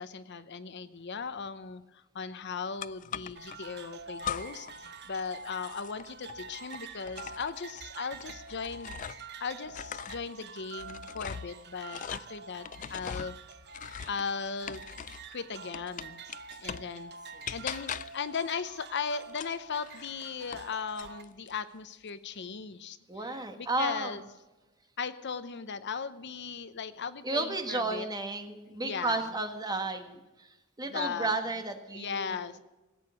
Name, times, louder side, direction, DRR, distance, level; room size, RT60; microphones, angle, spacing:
voice 1, 0.0-9.0 9.4-13.4 14.1-14.8 15.3-16.2 16.6-17.1 17.5-24.3 25.0-28.1 28.8-29.4 30.8-31.5 31.9-32.6, left 5 dB, 55° left, 13 dB, 0.7 m, -37 dB
sound 1, 2.8-3.6 4.2-4.8 5.1-9.3 9.7-15.3 15.7-17.0 17.4-18.3 19.3-20.7 21.0-21.6, left 8 dB, 35° left, 0.4 m, -41 dB
sound 2, 3.4-21.2, right 4 dB, 50° right, 0.9 m, -47 dB
voice 2, 23.1-24.1 27.2-30.5 30.8-32.5, right 2 dB, 20° right, 6 dB, 1.5 m, -33 dB
18.0 x 8.8 x 6.2 m, 1.1 s
head